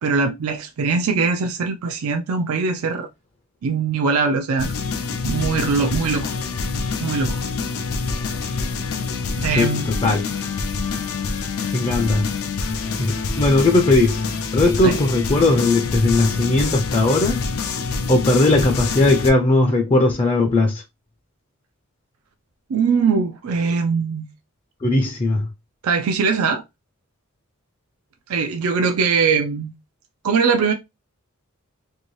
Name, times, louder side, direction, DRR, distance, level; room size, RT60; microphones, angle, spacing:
voice 1, 0.0-3.1 3.6-4.7 5.2-6.3 7.0-7.4 9.4-9.9 14.8-15.0 22.7-24.3 25.8-26.6 28.3-29.7 30.2-30.7, right 5 dB, 90° right, 0.4 m, -21 dB
sound 1, 4.6-19.3, left 4 dB, 80° left, 0.5 m, -26 dB
voice 2, 11.7-12.3 13.0-14.2 14.5-17.4 18.1-20.8 24.8-25.5, left 2 dB, 25° left, 0.4 m, -18 dB
2.7 x 2.6 x 3.0 m
head